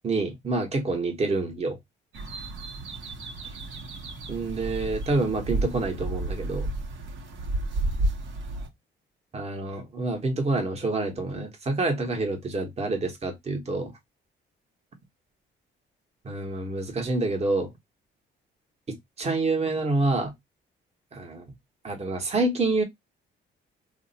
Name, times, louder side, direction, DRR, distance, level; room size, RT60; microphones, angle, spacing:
voice 1, 0.0-1.8 4.3-6.7 9.3-13.9 16.2-17.7 18.9-20.3 21.1-21.5 21.8-22.8, right 3 dB, 30° right, 1.0 m, -27 dB
sound 1, 2.1-8.7, right 2 dB, 70° right, 0.9 m, -32 dB
2.5 x 2.1 x 3.9 m
cardioid pair, 90°, 20 cm